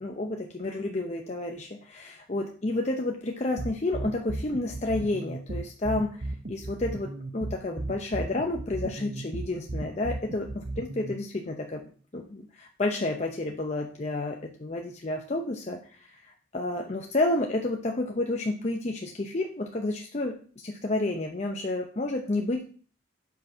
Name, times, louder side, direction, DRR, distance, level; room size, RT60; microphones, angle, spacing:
voice 1, 0.0-20.4 20.6-22.6, left 2 dB, 35° left, 2 dB, 0.6 m, -30 dB
sound 1, 3.6-11.1, right 2 dB, 55° right, 0.7 m, -35 dB
5.6 x 4.7 x 5.9 m, 0.43 s
head